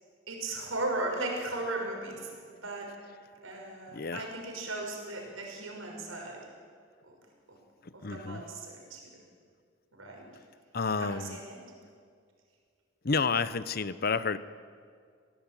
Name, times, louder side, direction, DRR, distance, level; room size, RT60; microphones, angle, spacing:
voice 1, 0.3-2.3 2.6-2.9 3.4-6.4 7.0-7.2 7.5-7.6 7.9-9.1 9.9-10.3 11.0-11.6, right 2 dB, 85° right, 1 dB, 6.0 m, -37 dB
voice 2, 3.9-4.3 7.8-8.4 10.7-11.4 13.0-14.4, left 4 dB, 50° left, 15 dB, 0.8 m, -30 dB
26.5 x 17.5 x 9.2 m, 2.1 s
head